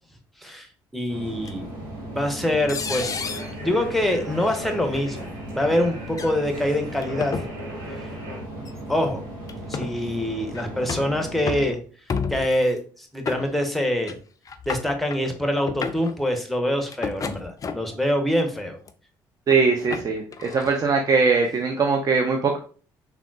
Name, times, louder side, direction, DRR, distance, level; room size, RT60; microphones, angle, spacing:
voice 1, 0.9-1.7 2.1-3.1 3.6-7.4 8.9-9.2 9.7-11.8 12.3-14.2 14.7-18.8, left 1 dB, ahead, 4 dB, 0.7 m, -25 dB
sound 1, 1.1-11.7, right 1 dB, 85° right, 1.0 m, -36 dB
sound 2, 1.5-1.6 2.7-3.5 4.4-4.6 4.9-5.1 6.1-6.3 7.0-7.5 8.7-8.8 9.5-9.9 10.5-11.1 11.5-11.7 12.1-12.6 13.3-13.8 14.1-14.2 14.5-15.2 15.6-16.1 16.9-18.0 18.6-18.9 19.5-20.8, left 5 dB, 35° left, 0.4 m, -31 dB
voice 2, 19.5-22.6, right 4 dB, 35° right, 2 dB, 0.5 m, -21 dB
3.5 x 2.3 x 2.3 m, 0.41 s
hypercardioid pair, 55°, 10 cm